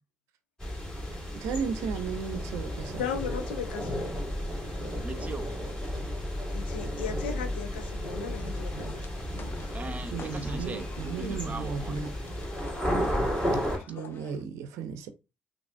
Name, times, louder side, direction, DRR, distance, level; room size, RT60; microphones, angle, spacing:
sound 1, 0.6-13.8, equal, 15° left, 2.2 m, -33 dB
voice 1, 1.4-3.0 10.1-12.1 13.5-13.6 13.9-15.1, right 6 dB, 65° right, 0.6 m, -35 dB
voice 2, 2.9-4.1 6.5-9.0 13.7-14.1, left 7 dB, 80° left, 0.6 m, -37 dB
voice 3, 5.0-5.6 9.7-12.0, right 3 dB, 25° right, 0.8 m, -40 dB
sound 2, 8.3-14.3, left 5 dB, 45° left, 0.6 m, -51 dB
5.7 x 2.6 x 2.3 m
hypercardioid pair, 45°, 5 cm